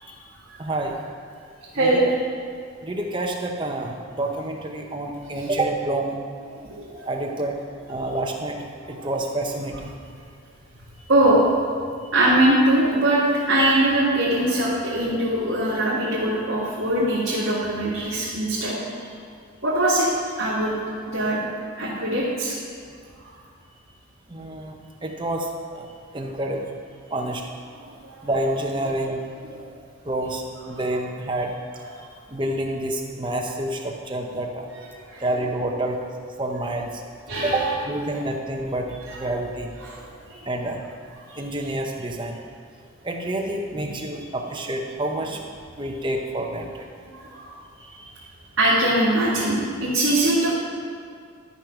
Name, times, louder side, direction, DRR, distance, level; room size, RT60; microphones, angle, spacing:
voice 1, 0.6-1.0 1.7-2.0 2.8-6.2 7.1-7.6 7.9-8.6 8.9-9.9 24.3-24.7 25.0-25.5 25.7-25.9 26.1-26.7 27.1-27.4 28.2-29.2 30.1-31.5 32.3-34.6 35.2-36.0 36.4-36.9 37.4-38.9 39.2-39.7 40.5-40.8 41.4-42.4 43.0-45.4 45.8-46.8, right 1 dB, 20° right, 1 dB, 0.8 m, -28 dB
voice 2, 1.7-2.1 5.4-5.5 6.5-7.1 9.0-9.1 11.1-11.4 12.1-19.1 19.6-20.1 20.4-21.4 21.8-22.5 23.2-23.3 27.8-28.2 29.5-29.6 35.0-35.2 37.3-37.7 39.1-39.2 39.8-40.4 41.3-41.4 43.7-43.8 47.1-47.5 48.6-50.5, right 1 dB, 60° right, -10 dB, 2.2 m, -22 dB
12.5 x 5.2 x 6.0 m, 2.2 s
head